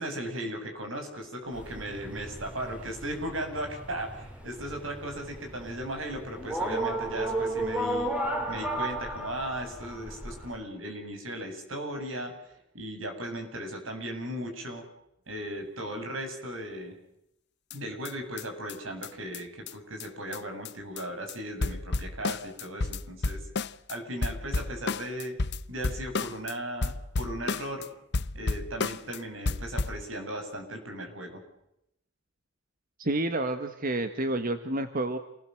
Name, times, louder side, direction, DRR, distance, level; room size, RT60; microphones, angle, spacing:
voice 1, 0.0-8.1 8.5-14.8 15.3-16.9 17.7-23.4 23.9-25.4 25.7-27.9 28.3-31.4, right 1 dB, 80° right, 5 dB, 7.6 m, -37 dB
sound 1, 1.5-10.6, right 1 dB, 5° right, 3.8 m, -34 dB
sound 2, 17.7-17.8 18.1-18.2 18.4-18.5 18.7-18.8 19.0-19.1 19.3-19.4 19.7-19.8 20.0-20.1 20.3-20.4 20.6-21.0 21.3-21.4 21.6-24.0 24.2-26.5 26.8-27.9 28.1-29.2 29.5-30.0, left 3 dB, 60° left, 0.9 m, -32 dB
voice 2, 33.0-35.2, right 2 dB, 45° right, 8 dB, 1.6 m, -29 dB
29.0 x 20.0 x 7.8 m, 0.80 s
head